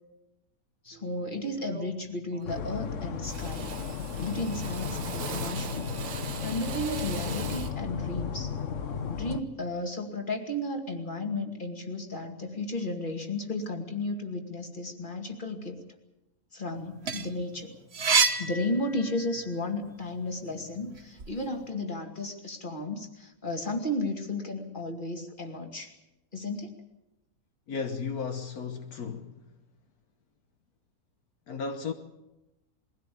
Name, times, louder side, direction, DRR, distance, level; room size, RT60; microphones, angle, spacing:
voice 1, 0.8-3.7 4.1-5.9 6.4-8.5 9.1-15.8 16.5-17.7 18.4-25.9 26.3-26.8, left 2 dB, 30° left, 2.5 m, -34 dB
Drill, 0.9-1.1 1.6-2.1 2.3-2.9 3.2-7.8, right 7 dB, 80° right, 1.6 m, -41 dB
sound 1, 2.4-9.4, left 6 dB, 55° left, 1.3 m, -34 dB
sound 2, 16.8-19.5 19.9-21.3, right 5 dB, 45° right, 1.3 m, -28 dB
voice 2, 27.7-29.4 31.5-31.9, left 5 dB, 70° left, 1.5 m, -34 dB
21.5 x 16.0 x 8.6 m
omnidirectional pair, 1.6 m